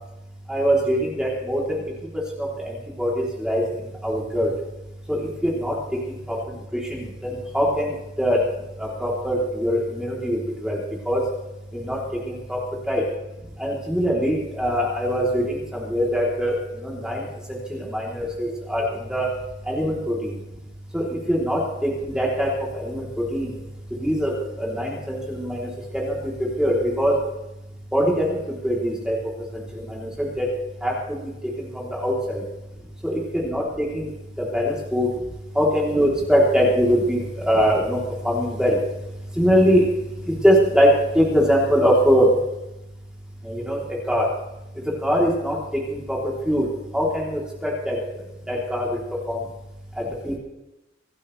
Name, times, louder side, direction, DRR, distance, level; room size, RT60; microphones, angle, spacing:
voice 1, 0.5-1.8 2.4-2.6 3.0-3.6 4.0-4.5 5.1-5.7 6.3-6.4 6.9-7.1 7.5-7.9 8.2-8.4 8.8-10.8 11.1-11.2 11.7-12.0 12.3-12.6 12.9-13.0 13.6-16.5 16.8-17.2 17.7-19.3 19.7-20.3 20.9-23.5 24.0-25.7 25.9-26.2 26.6-27.2 27.9-28.4 28.6-29.2 29.9-30.5 30.8-31.2 31.7-32.4 33.0-34.1 34.5-35.1 35.6-38.0 38.2-38.8 39.4-39.9 40.4-40.9 41.2-42.3 43.5-43.8 44.1-44.3 45.0-45.6 45.9-46.2 46.5-46.7 46.9-48.0 48.5-49.0 49.3-49.4 50.0-50.4, equal, 5° right, -4 dB, 3.5 m, -22 dB
26.5 x 12.0 x 3.4 m, 0.95 s
head